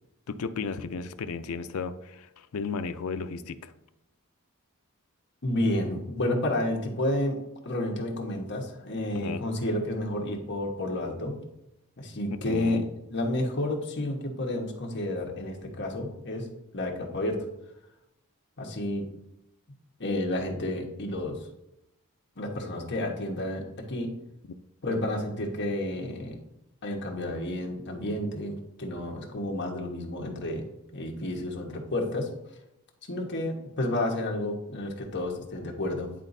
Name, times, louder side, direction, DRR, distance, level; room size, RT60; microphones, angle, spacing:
voice 1, 0.3-3.7 9.1-9.5 12.3-12.9, left 5 dB, 70° left, 11 dB, 0.4 m, -34 dB
voice 2, 5.4-7.4 7.6-11.4 12.0-12.8 13.1-16.5 16.7-17.4 18.6-19.1 20.0-21.4 22.4-24.1 24.8-26.4 26.8-30.6 30.9-32.3 33.1-36.1, left 1 dB, 55° left, 0 dB, 1.2 m, -30 dB
10.0 x 4.0 x 2.7 m, 0.86 s
head